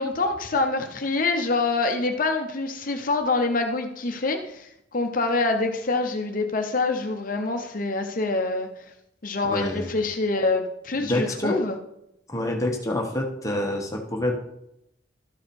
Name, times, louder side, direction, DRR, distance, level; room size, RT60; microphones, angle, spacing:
voice 1, 0.0-8.7 9.2-11.8, left 3 dB, 45° left, 5 dB, 0.7 m, -25 dB
voice 2, 9.4-9.9 11.0-11.6 12.3-14.4, left 1 dB, 15° left, 1 dB, 1.2 m, -27 dB
13.0 x 4.9 x 4.3 m, 0.79 s
head